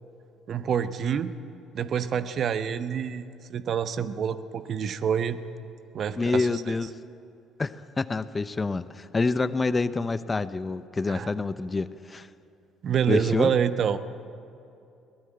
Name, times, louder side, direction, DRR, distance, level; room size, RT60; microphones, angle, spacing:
voice 1, 0.5-1.3 1.7-3.2 3.5-5.4 5.9-6.5 11.1-11.3 12.8-14.0, right 8 dB, 45° right, 13 dB, 1.0 m, -27 dB
voice 2, 6.2-6.9 7.6-12.3 13.1-13.5, left 3 dB, 25° left, 15 dB, 0.8 m, -27 dB
22.0 x 18.5 x 9.1 m, 2.7 s
figure-of-eight pair, 50°, 0 cm